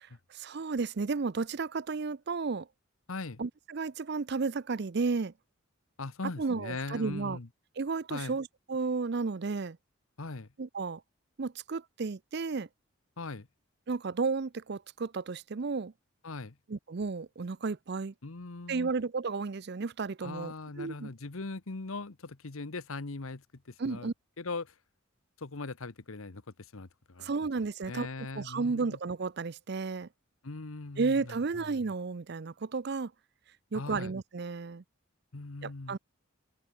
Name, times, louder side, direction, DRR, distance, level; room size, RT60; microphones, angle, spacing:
voice 1, 0.0-2.7 3.4-5.3 6.4-7.4 7.8-9.8 10.6-11.0 11.4-12.7 13.9-15.9 16.7-18.1 18.7-21.1 23.8-24.1 27.2-28.1 28.3-30.1 31.0-33.1 33.7-34.8 35.6-36.0, right 4 dB, 50° right, 0.5 m, -33 dB
voice 2, 3.1-3.4 6.0-7.5 8.1-8.4 10.2-10.5 13.2-13.5 16.2-16.6 18.2-18.9 20.2-24.1 24.4-24.7 25.4-27.3 27.9-29.0 30.4-31.8 33.7-34.1 35.3-36.0, left 3 dB, 80° left, 1.1 m, -40 dB
head